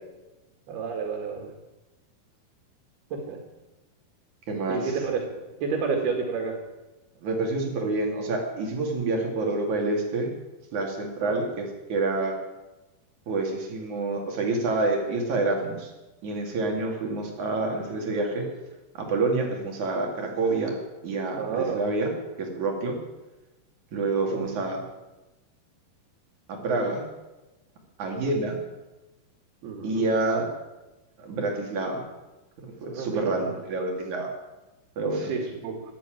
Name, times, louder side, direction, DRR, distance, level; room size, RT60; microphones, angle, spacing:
voice 1, 0.7-1.5 3.1-3.4 4.7-5.3 5.6-6.6 11.2-11.4 21.3-21.9 24.3-24.5 29.6-30.0 32.9-33.4 35.1-35.8, right 5 dB, 75° right, 1 dB, 4.1 m, -30 dB
voice 2, 4.5-5.0 7.2-10.4 10.7-12.4 13.3-15.9 16.2-18.5 19.0-20.8 21.0-22.1 22.4-23.0 23.9-24.9 26.5-27.0 28.0-28.6 29.8-30.5 31.2-32.0 32.6-34.3 35.0-35.3, right 3 dB, 50° right, 1 dB, 3.6 m, -27 dB
13.0 x 11.5 x 9.1 m, 1.1 s
omnidirectional pair, 4.5 m